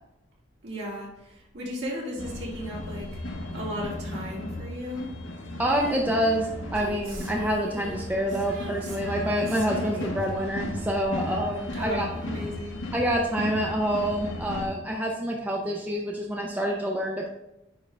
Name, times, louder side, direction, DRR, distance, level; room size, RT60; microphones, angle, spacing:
voice 1, 0.6-3.2 3.5-5.1 11.7-12.8, equal, 60° right, -5 dB, 2.4 m, -35 dB
sound 1, 2.2-14.7, left 1 dB, 75° left, 1.2 m, -36 dB
voice 2, 5.6-12.1 12.9-17.3, equal, 10° right, -1 dB, 0.6 m, -27 dB
Female singing, 5.6-12.3 12.5-12.6, right 2 dB, 85° right, 1.8 m, -42 dB
9.2 x 3.7 x 3.3 m, 0.89 s
head